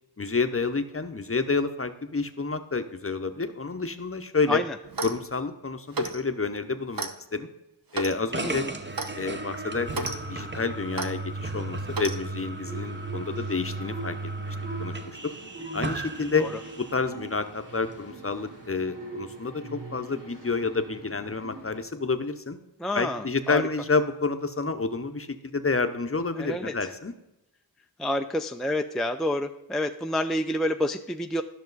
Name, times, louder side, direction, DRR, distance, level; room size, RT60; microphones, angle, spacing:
voice 1, 0.2-4.6 5.0-7.5 7.9-8.7 9.1-14.3 14.8-15.3 15.7-22.6 22.9-27.1, left 4 dB, 30° left, 9 dB, 0.8 m, -29 dB
Clock, 4.8-5.2 5.9-6.2 6.9-7.1 7.9-8.2 8.9-9.1 9.9-10.2 10.9-11.1 11.9-12.2, right 3 dB, 55° right, 0.9 m, -32 dB
sound 1, 8.3-17.1, right 2 dB, 25° right, 0.8 m, -35 dB
voice 2, 8.4-8.8 22.8-23.6 26.4-26.9 28.0-31.4, left 1 dB, ahead, 6 dB, 0.4 m, -28 dB
sound 2, 12.6-21.8, right 3 dB, 85° right, 2.9 m, -42 dB
13.0 x 6.1 x 4.0 m, 0.94 s
wide cardioid pair, 50°, 42 cm